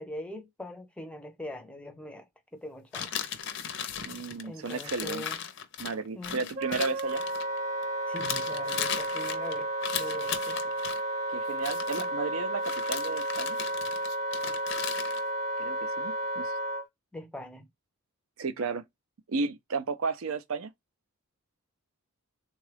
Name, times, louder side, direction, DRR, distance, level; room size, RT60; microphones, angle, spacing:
voice 1, 0.0-2.3 2.5-3.2 4.4-5.4 6.1-6.7 8.1-10.6 11.9-12.1 17.1-17.7, left 1 dB, 5° left, 0.5 m, -42 dB
sound 1, 2.9-7.8 8.2-11.0 11.5-12.1 12.6-15.2, left 8 dB, 55° left, 0.6 m, -36 dB
voice 2, 4.0-5.2 5.8-7.2 11.3-13.6 15.6-16.5 18.4-18.8 19.3-20.7, right 4 dB, 65° right, 0.5 m, -33 dB
Wind instrument woodwind instrument, 6.5-16.8, right 1 dB, 30° right, 0.8 m, -32 dB
3.6 x 2.3 x 3.3 m
head